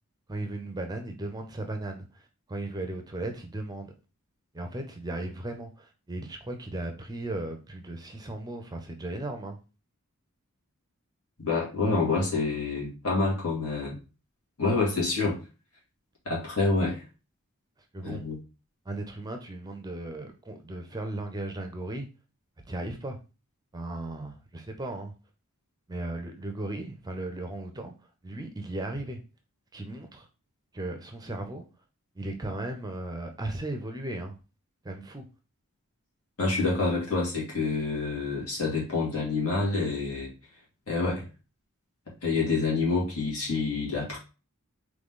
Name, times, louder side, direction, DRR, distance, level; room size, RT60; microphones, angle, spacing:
voice 1, 0.3-3.9 4.5-9.6 17.9-18.3 18.8-22.1 22.7-23.2 23.7-25.1 25.9-27.9 28.2-29.2 29.7-30.3 30.7-31.7 32.1-34.4 34.8-35.2, right 2 dB, 15° right, 5 dB, 0.5 m, -36 dB
voice 2, 11.4-14.0 14.6-15.4 16.3-17.0 18.0-18.4 36.4-40.3 40.9-41.2 42.2-44.2, left 3 dB, 75° left, -3 dB, 2.1 m, -27 dB
3.8 x 3.2 x 3.7 m, 0.31 s
head